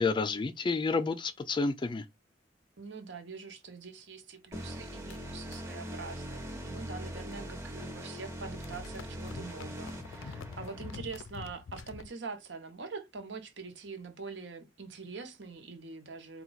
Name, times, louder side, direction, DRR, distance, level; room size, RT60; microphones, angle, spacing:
voice 1, 0.0-2.0, left 4 dB, 25° left, 0.3 m, -30 dB
voice 2, 2.8-16.4, right 4 dB, 65° right, 0.9 m, -44 dB
sound 1, 4.5-11.0, equal, 15° right, 1.0 m, -42 dB
sound 2, 5.1-7.7 8.0-12.1, left 4 dB, 90° left, 0.5 m, -48 dB
4.3 x 2.3 x 3.9 m
head